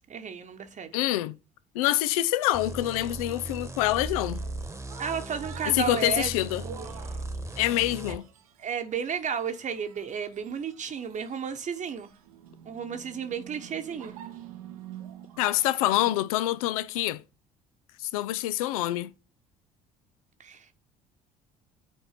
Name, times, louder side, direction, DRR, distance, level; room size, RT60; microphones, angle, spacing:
voice 1, 0.1-0.9 5.0-6.3 6.6-6.9 8.1-8.2 8.6-12.1 12.6-14.2 20.4-20.7, right 7 dB, 45° right, 1.0 m, -33 dB
voice 2, 0.9-1.4 1.7-4.4 5.7-6.6 7.6-8.2 15.4-17.2 18.0-19.1, left 15 dB, 80° left, 0.4 m, -26 dB
sound 1, 2.5-8.2, right 2 dB, 15° right, 1.1 m, -38 dB
sound 2, 4.1-16.2, right 10 dB, 85° right, 0.8 m, -48 dB
6.6 x 4.5 x 5.7 m
hypercardioid pair, 60°, 18 cm